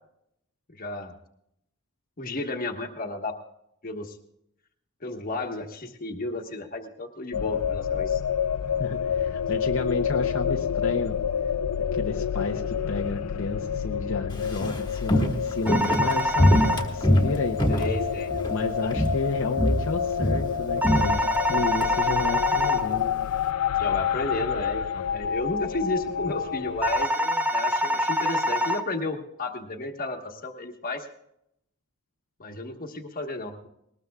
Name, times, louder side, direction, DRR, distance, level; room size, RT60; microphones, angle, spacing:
voice 1, 0.7-1.1 2.2-3.3 3.8-4.2 5.0-8.2 17.7-18.3 18.8-18.9 23.8-31.1 32.4-33.7, left 2 dB, 40° left, 4 dB, 1.3 m, -33 dB
sound 1, 7.3-27.1, left 7 dB, 90° left, 0.5 m, -28 dB
voice 2, 8.8-11.2 11.9-17.6 18.5-23.3, left 3 dB, 60° left, 0 dB, 0.8 m, -31 dB
Walk footsteps, 14.3-18.6 18.9-19.3 19.6-21.9 22.2-22.3, equal, 20° left, 1.6 m, -24 dB
sound 2, 15.7-16.8 20.8-22.8 26.8-28.8, equal, 5° right, 0.8 m, -25 dB
20.0 x 19.0 x 2.4 m, 0.78 s
head